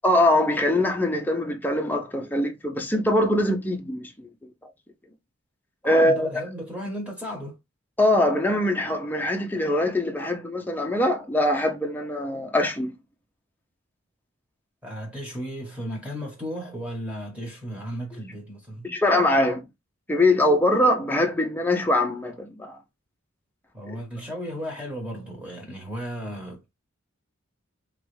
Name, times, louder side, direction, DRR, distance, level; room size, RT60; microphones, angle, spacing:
voice 1, 0.0-4.1 5.8-6.4 8.0-12.9 18.8-19.6 20.1-22.8, left 1 dB, 10° left, 0.6 m, -22 dB
voice 2, 5.8-7.6 14.8-18.9 23.7-26.7, equal, 5° right, 1.1 m, -35 dB
3.1 x 2.4 x 3.1 m
head